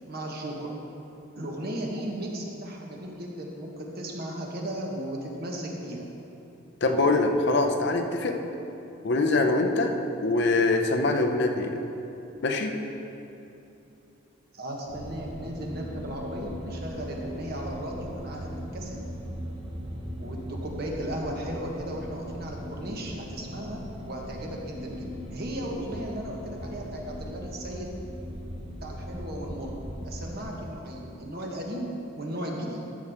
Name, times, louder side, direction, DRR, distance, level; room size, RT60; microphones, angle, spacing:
voice 1, 0.1-0.7 1.3-6.0 14.5-19.0 20.2-23.8 24.1-27.9 28.8-31.9 32.2-32.8, right 1 dB, 45° right, 0 dB, 1.2 m, -36 dB
voice 2, 6.8-8.4 9.0-10.0 10.2-11.8 12.4-12.8, left 2 dB, 55° left, 4 dB, 0.6 m, -24 dB
sound 1, 14.9-30.6, equal, 25° right, 0.9 m, -39 dB
12.5 x 7.0 x 3.5 m, 2.8 s
head